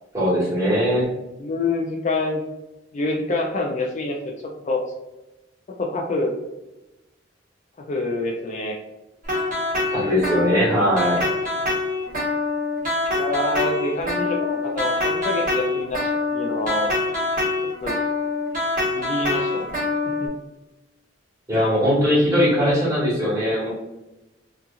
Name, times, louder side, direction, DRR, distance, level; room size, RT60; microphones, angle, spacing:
voice 1, 0.1-1.1 9.9-11.2 21.5-23.7, equal, 20° right, -8 dB, 1.4 m, -20 dB
voice 2, 1.4-2.4 2.9-4.2 4.6-4.8 5.8-6.3 7.9-8.8 13.1-16.9 17.8-17.9 18.9-19.7 20.2-20.3, left 2 dB, 40° left, 0 dB, 0.3 m, -26 dB
sound 1, 9.2-20.3, left 2 dB, 45° right, 1.2 m, -25 dB
2.8 x 2.4 x 2.3 m, 0.98 s
head